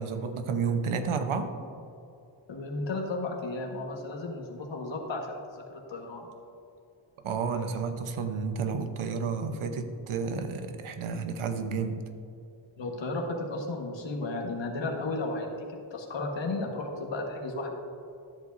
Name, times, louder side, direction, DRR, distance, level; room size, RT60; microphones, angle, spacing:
voice 1, 0.0-1.5 7.2-12.0, right 5 dB, 75° right, 8 dB, 0.9 m, -31 dB
voice 2, 2.5-6.3 12.8-17.7, left 2 dB, 60° left, 0 dB, 1.5 m, -34 dB
12.5 x 7.9 x 2.6 m, 2.6 s
wide cardioid pair, 115°, 50 cm